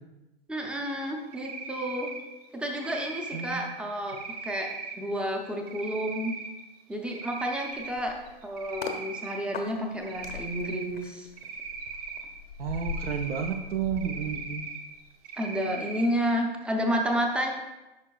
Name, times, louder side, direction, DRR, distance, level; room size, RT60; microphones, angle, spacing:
voice 1, 0.5-2.1 2.5-6.4 6.9-11.3 15.4-17.5, equal, 5° right, 2 dB, 0.5 m, -31 dB
Cricket, 1.3-2.2 2.8-3.6 4.1-4.9 5.7-6.5 6.9-7.9 8.3-9.4 10.0-10.8 11.4-12.2 12.7-13.6 14.0-14.8 15.2-16.1, right 5 dB, 40° right, 0.8 m, -39 dB
voice 2, 3.3-3.7 12.6-14.6, right 7 dB, 75° right, 4 dB, 0.6 m, -31 dB
sound 1, 7.7-9.0 9.5-15.1 15.4-15.7, left 6 dB, 75° left, 0.9 m, -41 dB
10.5 x 5.1 x 2.3 m, 1.0 s
hypercardioid pair, 125°, 30 cm